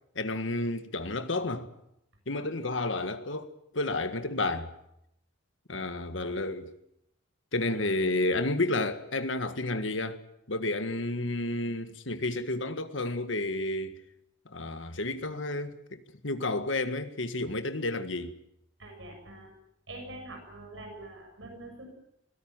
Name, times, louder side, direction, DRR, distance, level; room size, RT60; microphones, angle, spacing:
voice 1, 0.2-1.7 2.3-3.5 3.7-4.7 5.7-6.7 7.5-10.2 10.5-13.9 14.5-18.3, left 2 dB, 80° left, 1.8 m, -31 dB
voice 2, 18.8-19.5 19.9-21.9, right 1 dB, 75° right, 7.0 m, -44 dB
22.0 x 17.5 x 9.1 m
head